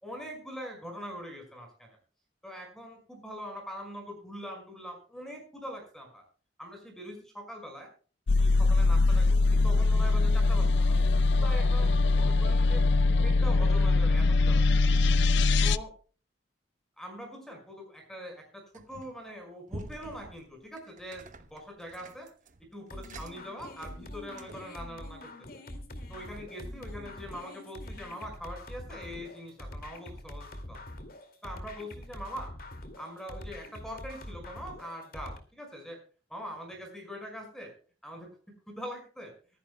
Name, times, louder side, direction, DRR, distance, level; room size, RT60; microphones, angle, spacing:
voice 1, 0.0-2.0 2.4-6.2 6.6-7.9 8.4-12.8 13.2-14.9 15.6-15.9 17.0-18.6 18.9-22.3 22.7-25.3 26.1-30.8 31.4-32.5 33.0-36.0 36.3-37.7 38.0-38.3 38.7-39.3, equal, 5° left, 2 dB, 5.4 m, -43 dB
sound 1, 8.3-15.8, left 3 dB, 70° left, 0.5 m, -23 dB
sound 2, 18.7-19.3 19.7-24.8, right 2 dB, 45° right, 0.9 m, -48 dB
sound 3, 22.9-35.4, left 1 dB, 50° left, 2.4 m, -44 dB
24.5 x 11.0 x 2.3 m, 0.39 s
head